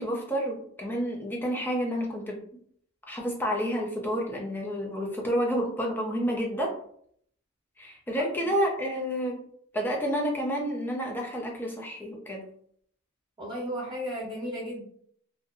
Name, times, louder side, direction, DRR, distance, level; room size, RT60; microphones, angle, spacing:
voice 1, 0.0-2.4 3.1-6.7 7.8-9.4 9.7-12.4, equal, 10° left, 0 dB, 0.4 m, -29 dB
voice 2, 13.4-14.8, equal, 20° right, -8 dB, 0.8 m, -34 dB
2.6 x 2.0 x 2.4 m, 0.64 s
head